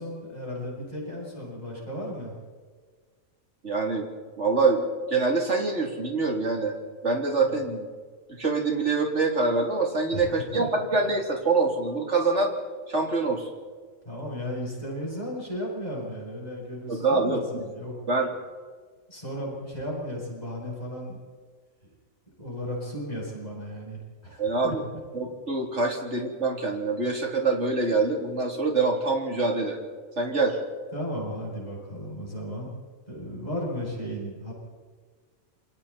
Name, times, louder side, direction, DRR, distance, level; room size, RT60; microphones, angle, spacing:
voice 1, 0.0-2.3 7.5-7.6 10.0-10.2 10.6-10.7 14.0-17.9 19.1-21.2 22.4-24.7 30.9-32.7 33.1-34.5, equal, 30° left, -4 dB, 8.2 m, -35 dB
voice 2, 3.6-4.1 4.4-6.8 7.0-7.9 8.4-12.5 12.9-13.5 16.9-17.6 18.1-18.3 24.4-24.8 25.1-29.8 30.2-30.6, right 3 dB, 55° right, 1 dB, 3.7 m, -25 dB
28.5 x 24.0 x 4.4 m, 1.5 s
omnidirectional pair, 1.5 m